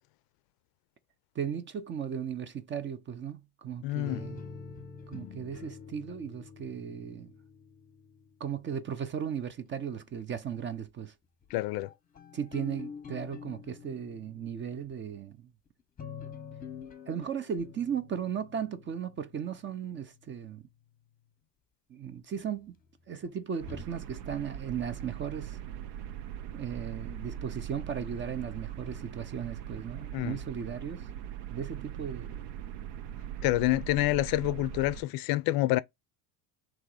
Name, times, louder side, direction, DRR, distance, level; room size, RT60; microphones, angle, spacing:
voice 1, 1.4-4.4 5.1-7.3 8.4-11.1 12.3-15.4 17.1-20.6 21.9-22.7 23.1-25.6 26.5-31.1 31.5-32.5, right 8 dB, 25° right, 0.5 m, -36 dB
voice 2, 3.8-4.2 11.5-11.9 30.1-30.4 33.4-35.8, left 17 dB, 55° left, 0.5 m, -27 dB
sound 1, 4.0-8.6 9.5-10.5 11.4-14.9 15.7-20.3 22.3-22.4 23.1-23.8, left 6 dB, 20° left, 0.8 m, -46 dB
sound 2, 23.6-35.0, right 9 dB, 85° right, 0.8 m, -41 dB
3.6 x 3.0 x 4.7 m
cardioid pair, 125°, 45 cm